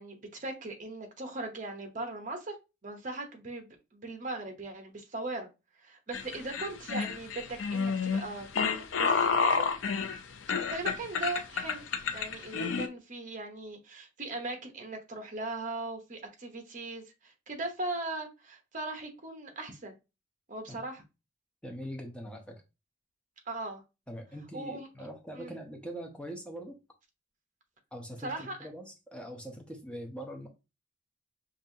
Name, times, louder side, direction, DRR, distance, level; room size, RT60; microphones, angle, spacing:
voice 1, 0.0-2.5 2.8-5.5 5.8-8.5 9.0-9.6 10.7-11.9 12.1-20.0 20.5-21.0 23.5-23.8 24.5-24.9 25.3-25.6 28.2-28.7, right 2 dB, 40° right, 0.9 m, -39 dB
sound 1, 6.1-12.9, left 5 dB, 75° left, 0.5 m, -30 dB
voice 2, 21.6-22.6 24.1-26.8 27.9-30.5, equal, 5° left, 0.6 m, -42 dB
5.4 x 2.6 x 2.7 m
head